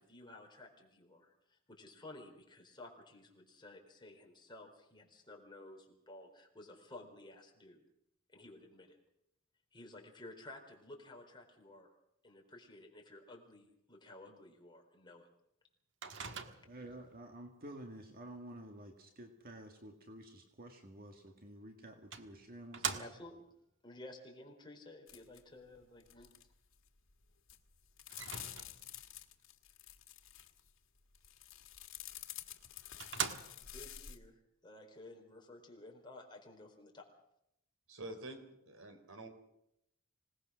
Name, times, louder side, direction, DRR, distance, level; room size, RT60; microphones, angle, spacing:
voice 1, 0.0-7.8 8.3-9.0 9.7-11.9 12.2-15.3 23.0-23.4 23.8-26.3 33.6-37.1, left 2 dB, 25° left, 1 dB, 4.4 m, -54 dB
Microwave oven, 16.0-16.9 21.3-21.4 22.1-23.5 28.1-29.0 32.1-32.2 32.6-32.7 33.0-33.9, right 6 dB, 65° right, 1.5 m, -41 dB
voice 2, 16.7-23.0, right 1 dB, 45° right, 4 dB, 2.0 m, -51 dB
sound 1, 25.1-25.4 25.7-26.4 26.7-27.1 27.5-30.7 31.1-34.2, left 12 dB, 85° left, 1.7 m, -50 dB
voice 3, 37.9-38.4 38.7-39.3, right 2 dB, 80° right, 6 dB, 4.1 m, -47 dB
26.0 x 19.0 x 6.4 m, 0.78 s
head